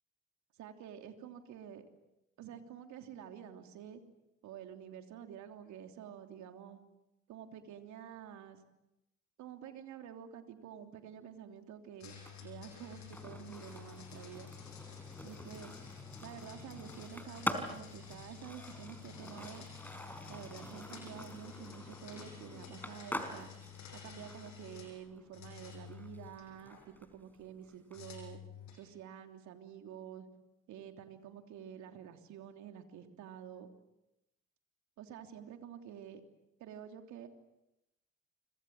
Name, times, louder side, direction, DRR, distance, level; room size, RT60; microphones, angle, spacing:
voice 1, 0.6-1.8 2.4-4.0 4.4-6.8 7.3-8.6 9.4-14.5 15.2-15.7 16.2-19.6 20.3-23.5 23.9-28.4 28.7-30.3 30.7-33.7 35.0-36.2 36.6-37.3, right 9 dB, 65° right, 6 dB, 3.3 m, -49 dB
sound 1, 12.0-25.0 25.3-26.8 27.9-28.9, left 8 dB, 65° left, 7.9 m, -51 dB
Skateboard, 12.1-28.0, left 1 dB, 5° left, 4.7 m, -46 dB
29.5 x 26.0 x 7.7 m, 0.89 s
hypercardioid pair, 55°, 31 cm